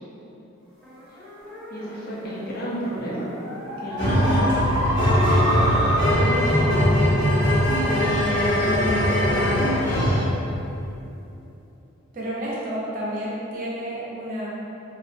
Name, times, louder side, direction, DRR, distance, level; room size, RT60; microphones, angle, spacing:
sound 1, 0.8-9.7, equal, ahead, 0.8 m, -30 dB
voice 1, 1.7-3.3 3.8-4.5 4.9-6.9 7.9-10.1, equal, 45° left, -5 dB, 0.5 m, -31 dB
sound 2, 4.0-10.3, equal, 70° left, 1.1 m, -21 dB
voice 2, 12.1-14.5, equal, 40° right, -6 dB, 0.6 m, -30 dB
3.0 x 2.4 x 2.5 m, 2.8 s
head